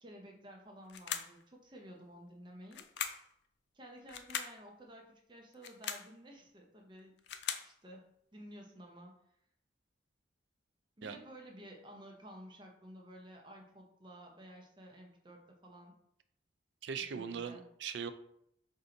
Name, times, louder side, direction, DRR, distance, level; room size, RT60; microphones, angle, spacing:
voice 1, 0.0-2.9 3.7-7.2 7.6-9.1 11.0-15.9 17.0-17.6, equal, 25° right, 1 dB, 0.6 m, -53 dB
sound 1, 0.9-1.4 2.7-3.3 4.1-4.6 5.5-6.1 7.0-7.7, left 8 dB, 65° left, 0.4 m, -40 dB
voice 2, 16.8-18.1, right 6 dB, 70° right, 10 dB, 0.4 m, -40 dB
4.4 x 2.7 x 3.8 m, 0.71 s
head